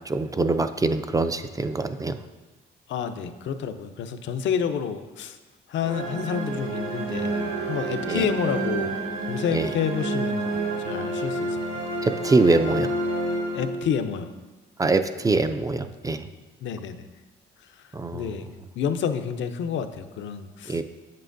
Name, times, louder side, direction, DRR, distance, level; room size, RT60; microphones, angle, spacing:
voice 1, 0.1-2.2 8.1-8.3 9.5-9.7 12.0-12.9 14.8-16.3 17.9-18.3 20.7-20.8, right 3 dB, 15° right, 9 dB, 0.3 m, -23 dB
voice 2, 2.9-5.4 5.7-8.9 9.3-10.6 10.8-11.8 13.5-14.3 16.6-17.0 18.1-18.5 18.8-20.8, left 7 dB, 70° left, 8 dB, 0.6 m, -29 dB
sound 1, 5.8-14.2, right 2 dB, 75° right, 1.7 m, -29 dB
7.6 x 7.5 x 2.5 m, 1.2 s
cardioid pair, 90°, 20 cm